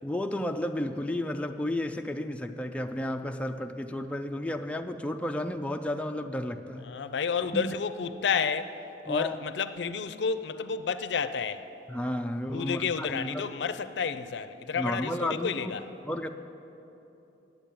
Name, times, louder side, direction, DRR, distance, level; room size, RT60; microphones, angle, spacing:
voice 1, 0.0-7.0 7.5-7.8 9.1-9.4 11.9-13.5 14.8-15.8 16.1-16.3, left 1 dB, 5° left, 0.3 m, -32 dB
voice 2, 6.8-8.8 9.0-11.7 12.5-15.8, left 6 dB, 70° left, 0.4 m, -31 dB
8.8 x 8.1 x 8.6 m
head